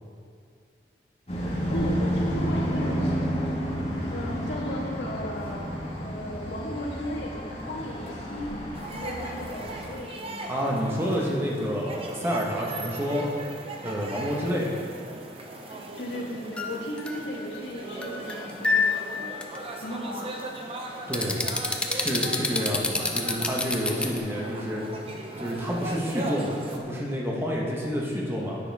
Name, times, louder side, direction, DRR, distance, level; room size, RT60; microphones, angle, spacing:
sound 1, 1.3-9.9, equal, 35° left, 1.8 m, -30 dB
voice 1, 1.7-3.5 4.1-5.7 6.0-7.4 7.7-8.5 9.0-10.8 15.7-19.3 19.8-20.4, equal, 80° left, -3 dB, 1.7 m, -36 dB
sound 2, 8.7-26.8, right 2 dB, 30° right, 0.8 m, -39 dB
voice 2, 10.5-13.3 13.8-14.7 21.1-21.4 21.9-24.9 25.4-28.6, equal, 15° right, -3 dB, 1.3 m, -29 dB
sound 3, 16.6-17.6 18.0-19.1 19.4-19.6 21.1-24.2, left 3 dB, 5° left, 0.5 m, -26 dB
10.0 x 9.1 x 3.6 m, 2.3 s
head